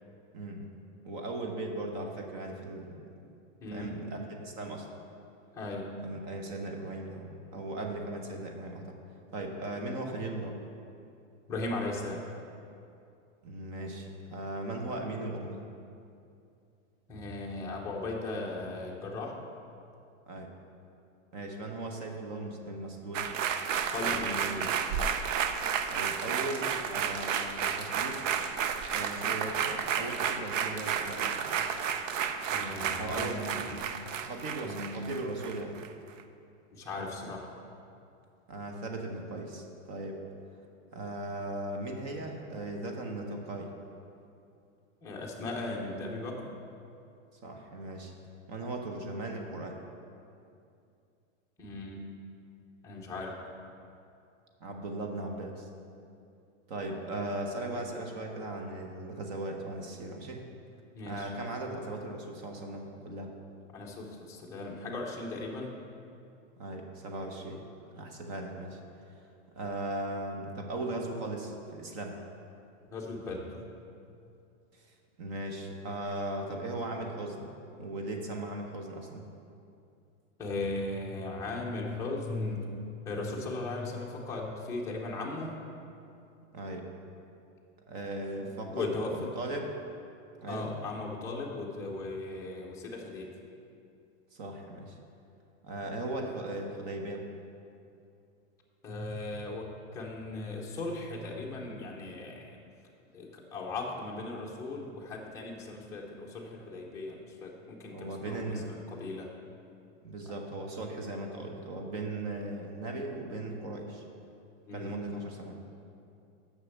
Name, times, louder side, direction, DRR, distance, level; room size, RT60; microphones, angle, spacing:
voice 1, 0.3-0.7 1.0-3.1 3.7-4.9 6.0-9.0 9.3-10.6 13.4-15.6 20.3-20.5 21.3-23.3 25.9-28.2 28.9-31.4 33.0-33.5 34.2-35.8 38.5-40.2 40.9-43.7 47.4-48.1 48.5-49.8 54.6-55.7 56.7-60.4 61.1-63.3 66.6-67.7 67.9-68.8 69.6-72.2 74.7-74.9 75.2-77.5 77.8-79.2 86.5-86.9 87.9-89.7 90.4-90.7 94.3-95.0 95.6-97.2 107.9-108.7 110.0-114.1 114.7-115.6, right 2 dB, 35° right, 3 dB, 0.8 m, -38 dB
voice 2, 3.6-4.0 5.5-5.9 11.5-12.2 17.1-19.4 23.8-24.7 32.5-33.9 34.6-34.9 36.7-37.5 45.0-46.4 51.6-52.1 52.8-53.3 60.9-61.3 63.7-65.7 72.9-73.6 80.4-82.7 83.0-85.5 88.4-89.1 90.5-93.3 98.8-99.6 99.9-102.6 103.1-109.3 114.7-115.0, left 2 dB, 10° left, -3 dB, 0.7 m, -37 dB
sound 1, 23.1-35.9 36.2-36.3, right 7 dB, 80° right, 0.7 m, -32 dB
6.6 x 6.3 x 6.9 m, 2.5 s
supercardioid pair, 170°, 38 cm